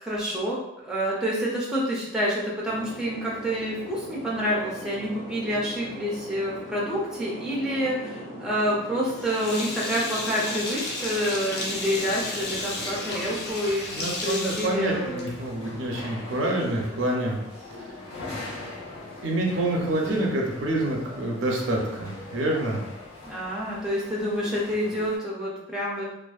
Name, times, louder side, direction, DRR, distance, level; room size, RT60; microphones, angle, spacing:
voice 1, 0.0-15.3 23.2-26.0, equal, 5° right, -6 dB, 0.4 m, -28 dB
sound 1, 2.6-13.5, right 1 dB, 35° left, 1.3 m, -40 dB
Sink (filling or washing), 9.1-15.5, left 2 dB, 55° left, 0.5 m, -33 dB
sound 2, 12.0-25.2, left 2 dB, 85° left, 1.0 m, -42 dB
voice 2, 13.9-17.4 19.2-22.8, right 1 dB, 75° right, -1 dB, 0.6 m, -27 dB
2.5 x 2.3 x 2.3 m, 0.87 s
head